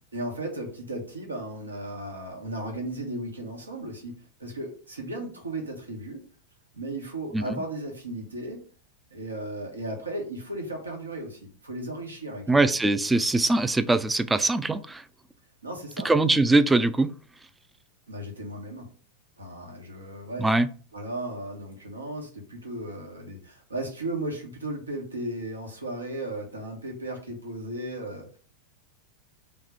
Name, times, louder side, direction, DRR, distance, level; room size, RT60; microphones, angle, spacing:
voice 1, 0.1-6.2 6.7-8.7 9.1-12.6 15.6-16.1 18.1-18.9 19.4-20.5 20.9-28.4, right 1 dB, 75° right, 1.2 m, -35 dB
voice 2, 12.5-15.0 16.0-17.1 20.4-20.7, right 2 dB, 10° right, 0.3 m, -22 dB
3.5 x 3.2 x 4.8 m
figure-of-eight pair, 90°, 0 cm